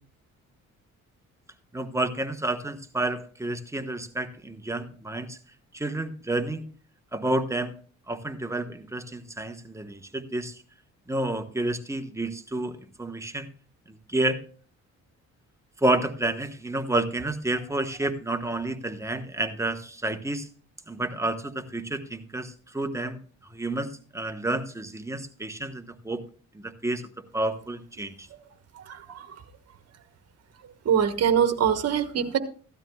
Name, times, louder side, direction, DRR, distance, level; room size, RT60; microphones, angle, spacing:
voice 1, 1.7-5.4 5.7-6.7 7.1-7.8 8.1-10.6 11.1-13.5 13.9-14.4 15.8-20.5 20.9-26.2 26.5-27.0 27.3-28.3, right 2 dB, 10° right, 6 dB, 1.1 m, -30 dB
voice 2, 28.8-29.4 30.8-32.4, right 8 dB, 55° right, 9 dB, 1.4 m, -24 dB
16.0 x 12.5 x 2.3 m, 0.41 s
cardioid pair, 90°, 30 cm